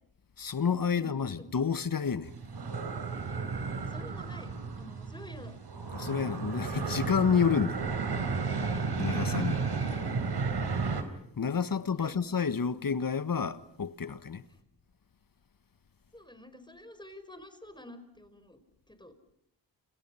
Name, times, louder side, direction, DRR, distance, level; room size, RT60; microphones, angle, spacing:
voice 1, 0.4-2.4 5.9-7.8 9.0-9.6 11.4-14.4, left 6 dB, 50° left, 1.6 m, -29 dB
voice 2, 1.0-1.4 3.8-5.6 11.7-12.2 16.1-18.6 18.9-19.1, left 1 dB, 10° left, 5.3 m, -49 dB
sound 1, 2.2-11.0, right 4 dB, 65° right, 4.1 m, -33 dB
29.5 x 28.5 x 5.8 m
cardioid pair, 55°, 43 cm